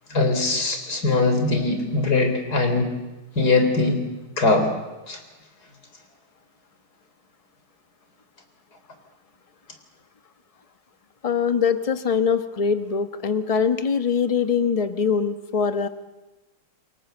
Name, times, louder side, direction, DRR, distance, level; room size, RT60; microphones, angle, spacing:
voice 1, 0.1-2.9 3.4-4.0 4.4-4.7 5.1-5.2, left 3 dB, 45° left, 6 dB, 4.3 m, -21 dB
voice 2, 11.2-15.9, left 6 dB, 30° left, 9 dB, 0.7 m, -23 dB
29.0 x 23.0 x 7.9 m, 1.1 s
omnidirectional pair, 2.4 m